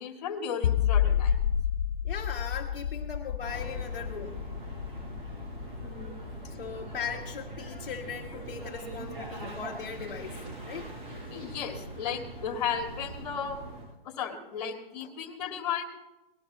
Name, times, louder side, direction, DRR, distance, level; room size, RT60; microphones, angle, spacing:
voice 1, 0.0-1.5 5.8-6.4 11.3-13.6 14.0-15.8, left 7 dB, 45° left, 4 dB, 2.0 m, -35 dB
sound 1, 0.6-7.8, left 9 dB, 90° left, 0.6 m, -30 dB
voice 2, 2.0-4.4 6.5-10.4 10.7-10.9 15.0-15.1, left 7 dB, 60° left, 0 dB, 1.4 m, -39 dB
sound 2, 3.4-13.9, right 2 dB, 50° right, 6.7 m, -42 dB
19.0 x 12.5 x 3.9 m, 0.99 s
hypercardioid pair, 155°, 30 cm